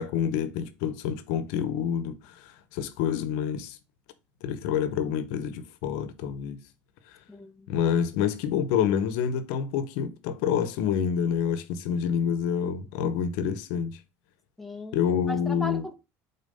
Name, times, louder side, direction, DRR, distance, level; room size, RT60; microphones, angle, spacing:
voice 1, 0.0-3.8 4.4-6.6 7.7-14.0 14.9-15.8, left 8 dB, 85° left, 0.9 m, -27 dB
voice 2, 7.3-7.7 14.6-15.0 15.3-15.9, left 1 dB, 5° left, 1.1 m, -38 dB
5.3 x 4.0 x 5.3 m
cardioid pair, 110°, 7 cm